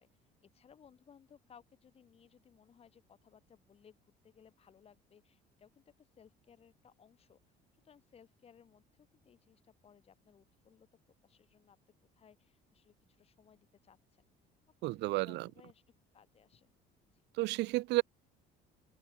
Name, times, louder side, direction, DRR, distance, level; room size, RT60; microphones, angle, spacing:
voice 1, 0.0-7.6 7.8-10.9 11.2-11.8 12.1-14.3 14.8-15.8 16.1-16.7 17.1-17.2 17.6-17.7, left 7 dB, 35° left, 3.9 m, -63 dB
voice 2, 14.8-15.5 17.4-18.0, right 20 dB, 70° right, 0.7 m, -32 dB
open air
cardioid pair, 145°, 18 cm